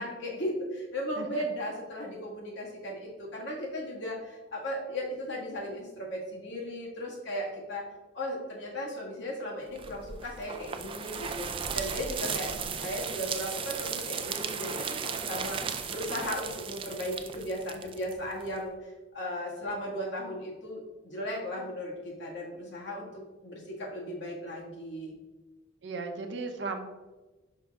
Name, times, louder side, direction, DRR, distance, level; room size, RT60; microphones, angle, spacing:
voice 1, 0.0-7.9 8.1-12.6 12.8-15.6 15.9-25.1, equal, 65° left, -3 dB, 1.7 m, -36 dB
sound 1, 9.8-18.6, right 6 dB, 25° right, 0.3 m, -36 dB
voice 2, 25.8-26.8, right 3 dB, 65° right, 5 dB, 0.7 m, -37 dB
5.6 x 5.1 x 3.5 m, 1.2 s
head